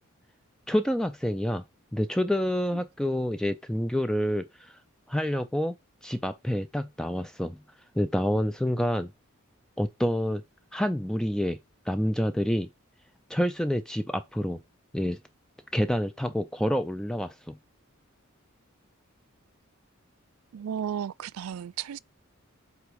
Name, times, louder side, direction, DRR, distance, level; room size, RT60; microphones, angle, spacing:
voice 1, 0.7-1.6 1.9-4.8 5.1-5.7 6.0-7.6 7.9-9.1 9.8-10.4 10.7-11.6 11.9-12.7 13.3-14.6 14.9-15.2 15.7-17.6, equal, 5° left, 0.3 m, -28 dB
voice 2, 20.5-22.0, right 8 dB, 85° right, 0.4 m, -34 dB
8.0 x 3.5 x 4.7 m
head